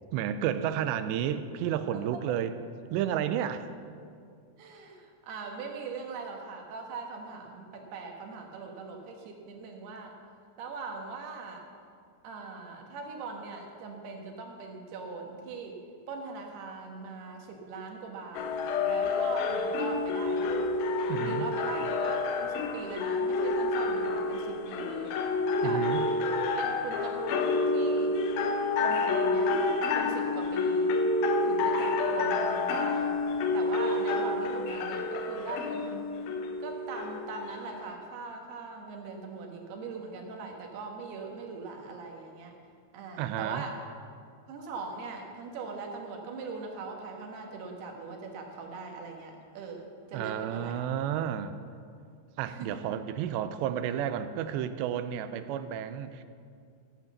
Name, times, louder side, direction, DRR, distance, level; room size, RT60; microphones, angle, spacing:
voice 1, 0.1-2.5 2.9-3.7 21.1-21.5 25.6-26.0 43.2-43.6 50.1-51.5 52.4-56.2, right 10 dB, 90° right, 11 dB, 2.8 m, -31 dB
voice 2, 4.6-10.2 10.6-11.6 12.2-15.8 16.1-18.6 18.8-20.6 21.2-25.2 25.6-25.9 26.6-28.2 28.8-29.6 29.9-31.0 31.4-33.1 33.5-36.1 36.6-42.6 42.9-43.8 44.5-50.8 52.4-52.9, right 4 dB, 70° right, 2 dB, 3.3 m, -40 dB
sound 1, 18.3-37.9, left 3 dB, 75° left, 2.5 m, -29 dB
14.5 x 7.9 x 7.2 m, 2.2 s
omnidirectional pair, 4.9 m